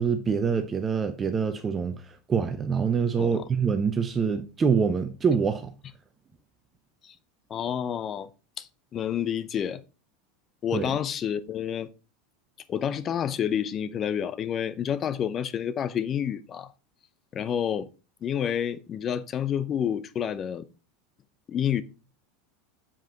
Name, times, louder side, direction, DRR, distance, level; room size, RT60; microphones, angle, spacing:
voice 1, 0.0-5.7 10.7-11.0, right 6 dB, 25° right, 0.8 m, -25 dB
voice 2, 7.5-8.3 8.6-8.7 8.9-9.8 10.6-11.9 12.7-16.7 17.3-17.9 18.2-20.7 21.5-21.8, left 9 dB, 35° left, 0.7 m, -29 dB
7.4 x 5.0 x 4.0 m
hypercardioid pair, 90°, 0 cm